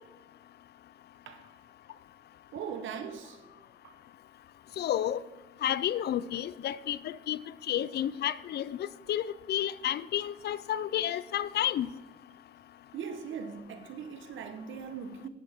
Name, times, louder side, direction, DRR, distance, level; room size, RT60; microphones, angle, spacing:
voice 1, 2.5-3.4 12.9-15.3, right 7 dB, 75° right, 1.1 m, -39 dB
voice 2, 4.8-5.2 5.6-7.0 7.3-7.4 7.7-8.8 9.1-9.2 9.5-11.9, left 11 dB, 55° left, 0.4 m, -30 dB
10.5 x 9.6 x 3.6 m
cardioid pair, 90°, 20 cm